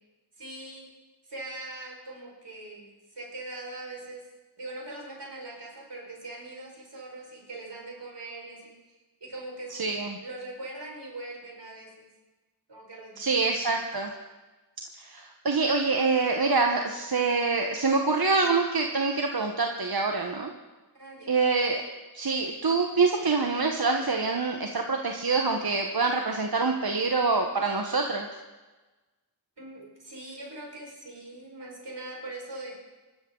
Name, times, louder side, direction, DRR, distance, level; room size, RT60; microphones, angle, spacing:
voice 1, 0.4-0.9 1.2-4.3 4.6-9.8 10.2-12.1 12.7-13.6 20.9-21.4 29.6-32.8, right 2 dB, 85° right, -2 dB, 5.3 m, -42 dB
voice 2, 9.8-10.2 13.2-14.1 15.0-20.5 21.3-21.8 22.1-28.3, right 4 dB, 60° right, 3 dB, 1.3 m, -25 dB
24.5 x 13.0 x 3.9 m, 1.2 s
wide cardioid pair, 45°, 41 cm